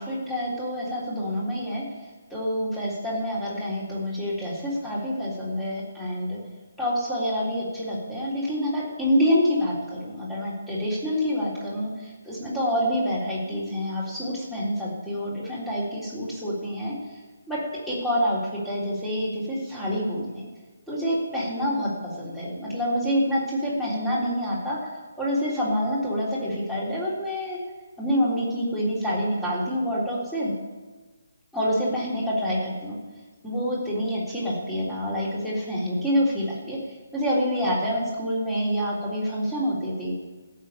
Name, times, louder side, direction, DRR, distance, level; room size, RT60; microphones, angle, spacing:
voice 1, 0.0-1.8 2.3-6.4 6.8-16.9 17.5-17.6 17.9-20.5 20.9-24.8 25.2-27.6 28.0-30.5 31.5-33.0 33.4-36.8 37.1-40.1, equal, 5° left, -7 dB, 3.5 m, -27 dB
14.5 x 6.6 x 8.6 m, 1.3 s
figure-of-eight pair, 145°, 0 cm